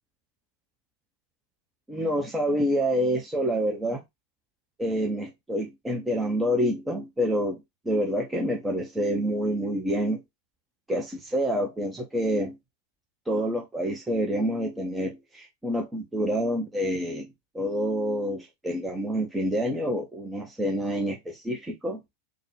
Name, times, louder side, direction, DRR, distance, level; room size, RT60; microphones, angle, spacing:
voice 1, 1.9-4.0 4.8-7.6 7.9-10.2 10.9-12.6 13.3-17.3 17.5-22.0, equal, 10° right, 0.7 m, -27 dB
3.6 x 2.2 x 3.2 m
figure-of-eight pair, 90°, 0 cm